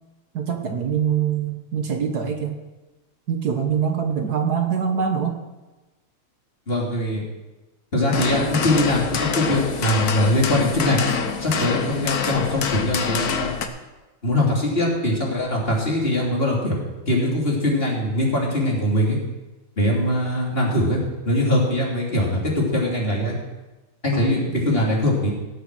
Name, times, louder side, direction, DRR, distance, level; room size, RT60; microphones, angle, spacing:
voice 1, 0.3-2.6 3.3-5.4 24.1-24.5, right 7 dB, 55° right, 5 dB, 1.5 m, -24 dB
voice 2, 6.7-7.2 7.9-11.1 11.4-13.5 14.2-16.8 17.1-19.2 19.8-23.4 24.0-25.3, left 1 dB, 25° left, -3 dB, 3.2 m, -22 dB
sound 1, 8.1-13.7, left 6 dB, 55° left, 1.3 m, -26 dB
18.0 x 6.7 x 6.2 m, 1.1 s
omnidirectional pair, 2.3 m